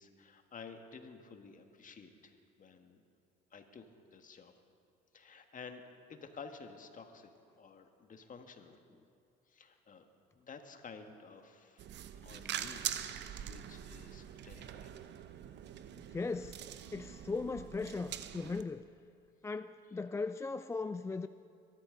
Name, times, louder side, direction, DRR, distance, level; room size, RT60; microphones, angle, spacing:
voice 1, 0.0-3.0 3.5-3.8 4.1-4.6 5.1-5.8 6.1-8.8 9.5-10.1 10.3-15.0, left 5 dB, 40° left, 6 dB, 1.6 m, -52 dB
sound 1, 11.8-18.6, right 10 dB, 55° right, 0.8 m, -43 dB
voice 2, 16.1-16.6 16.9-18.9 19.4-21.3, left 4 dB, 15° left, 12 dB, 0.3 m, -38 dB
22.5 x 13.0 x 3.9 m, 2.5 s
supercardioid pair, 75°, 21 cm